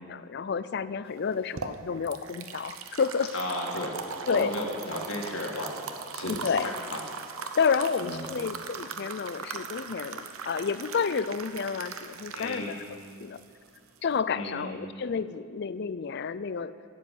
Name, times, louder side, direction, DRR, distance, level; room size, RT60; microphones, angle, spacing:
voice 1, 0.1-3.3 4.3-4.5 6.3-6.7 7.5-13.4 14.0-16.8, left 5 dB, 50° left, 15 dB, 0.4 m, -30 dB
sound 1, 1.2-14.2, right 5 dB, 75° right, 0.8 m, -40 dB
voice 2, 3.3-3.9 4.3-5.8 6.1-7.0 8.0-8.2 12.3-12.7 14.3-14.7, left 1 dB, 70° left, -1 dB, 2.1 m, -34 dB
12.0 x 7.6 x 9.3 m, 2.2 s
head